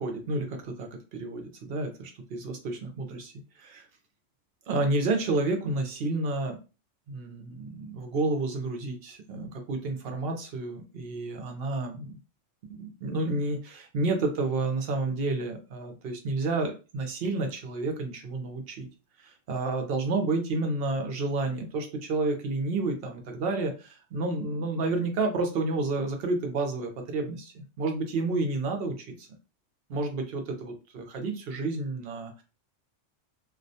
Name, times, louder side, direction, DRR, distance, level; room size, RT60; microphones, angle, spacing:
voice 1, 0.0-3.3 3.6-3.9 4.7-6.6 7.1-12.2 12.7-18.9 19.2-29.1 29.9-32.4, right 3 dB, 60° right, 4 dB, 0.7 m, -30 dB
2.3 x 2.1 x 2.6 m, 0.31 s
omnidirectional pair, 1.3 m